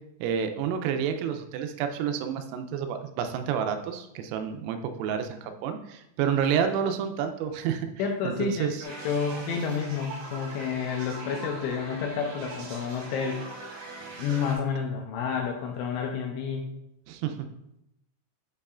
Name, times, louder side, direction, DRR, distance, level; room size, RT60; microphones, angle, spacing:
voice 1, 0.2-7.9 8.2-8.8 17.1-17.5, right 8 dB, 90° right, 7 dB, 3.3 m, -29 dB
voice 2, 8.0-13.5 14.2-16.7, left 6 dB, 85° left, 1 dB, 2.7 m, -30 dB
sound 1, 8.8-14.5, right 2 dB, 60° right, 2.6 m, -41 dB
8.4 x 5.4 x 2.4 m, 0.84 s
omnidirectional pair, 5.9 m